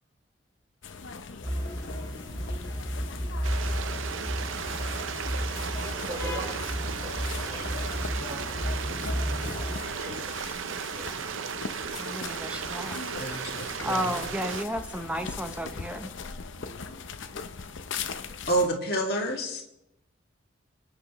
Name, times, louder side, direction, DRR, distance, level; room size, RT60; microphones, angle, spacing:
sound 1, 0.8-18.7, left 5 dB, 80° left, 0.7 m, -40 dB
sound 2, 1.4-9.8, equal, 20° left, 2.2 m, -33 dB
Stream, 3.4-14.6, right 6 dB, 90° right, 0.6 m, -35 dB
voice 1, 6.1-6.6 6.9-8.5 9.6-11.2 16.6-17.1, right 2 dB, 35° right, 0 dB, 1.4 m, -44 dB
voice 2, 12.0-13.0 13.8-16.1, equal, 5° right, 6 dB, 0.8 m, -33 dB
voice 3, 13.1-14.2 18.5-19.6, right 1 dB, 55° left, -1 dB, 2.2 m, -29 dB
23.5 x 8.8 x 3.1 m, 0.86 s
head